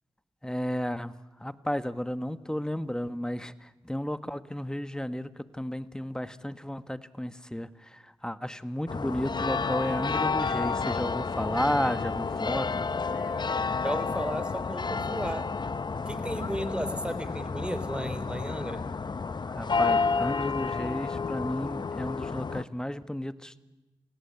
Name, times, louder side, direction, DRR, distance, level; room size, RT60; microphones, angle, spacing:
voice 1, 0.4-1.1 1.4-12.9 19.4-23.6, left 1 dB, 5° left, 12 dB, 1.4 m, -33 dB
sound 1, 8.9-22.6, left 4 dB, 45° left, 0.8 m, -30 dB
voice 2, 13.8-15.5 16.1-18.8, equal, 10° right, 11 dB, 3.5 m, -34 dB
27.5 x 17.0 x 8.3 m, 1.1 s
supercardioid pair, 40°, 10 cm